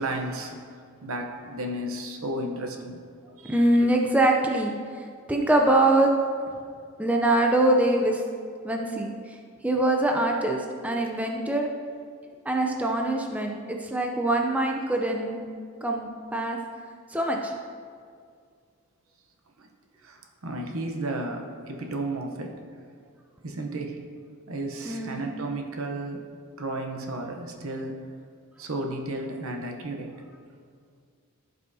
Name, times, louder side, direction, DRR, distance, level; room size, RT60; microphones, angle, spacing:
voice 1, 0.0-3.0 3.4-3.5 19.6-19.7 20.0-22.6 23.4-24.0 24.5-26.3 26.6-28.0 28.6-30.2, right 1 dB, 70° right, 3 dB, 0.9 m, -33 dB
voice 2, 3.5-6.1 7.0-8.2 8.6-9.4 9.6-11.7 12.4-15.4 15.8-16.6 17.1-17.5 24.8-25.3 28.7-28.9, right 1 dB, 5° right, 1 dB, 0.5 m, -24 dB
15.5 x 5.4 x 2.8 m, 2.1 s
head